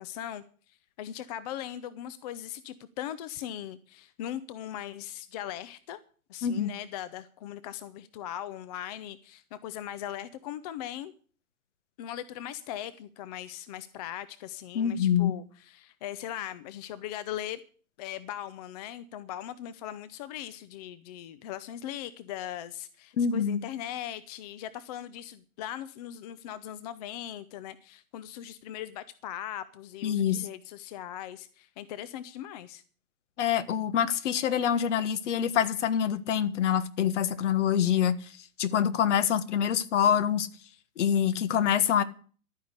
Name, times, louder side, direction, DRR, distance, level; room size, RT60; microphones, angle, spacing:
voice 1, 0.0-6.0 6.3-11.1 12.0-17.6 18.0-32.8, left 11 dB, 30° left, 0.6 m, -39 dB
voice 2, 14.7-15.3 23.2-23.6 30.0-30.4 33.4-38.1 38.6-40.5 41.0-42.0, left 9 dB, 55° left, 1.4 m, -25 dB
12.5 x 9.5 x 8.1 m
hypercardioid pair, 135°, 44 cm